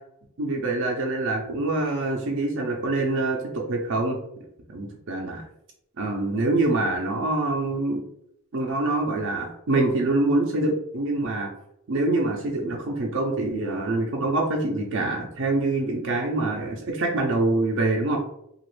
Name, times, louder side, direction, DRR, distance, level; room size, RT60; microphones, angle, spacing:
voice 1, 0.4-4.2 4.7-5.4 6.0-8.0 8.5-11.5 11.9-18.2, right 2 dB, 60° right, 0 dB, 0.5 m, -25 dB
2.9 x 2.4 x 3.1 m, 0.76 s
head